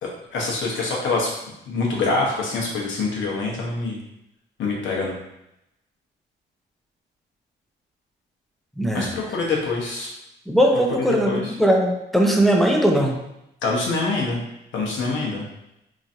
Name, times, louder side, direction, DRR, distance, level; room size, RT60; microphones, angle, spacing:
voice 1, 0.0-1.3 1.7-4.0 4.6-5.2 8.9-10.1 11.1-11.5 13.6-14.4 14.7-15.4, left 3 dB, 70° left, -2 dB, 0.9 m, -25 dB
voice 2, 8.8-9.1 10.5-13.2, equal, ahead, 1 dB, 0.5 m, -19 dB
3.0 x 2.6 x 2.6 m, 0.85 s
cardioid pair, 90°, 20 cm